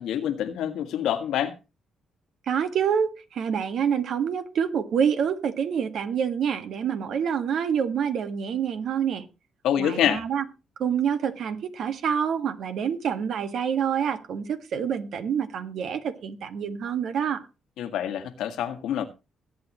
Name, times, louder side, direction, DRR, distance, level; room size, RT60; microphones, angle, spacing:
voice 1, 0.0-1.6 9.6-10.2 17.8-19.0, left 10 dB, 85° left, 1.7 m, -26 dB
voice 2, 2.5-9.3 9.8-10.4 10.8-17.4, right 7 dB, 70° right, 1.7 m, -27 dB
21.0 x 8.6 x 3.1 m
cardioid pair, 90°, 0 cm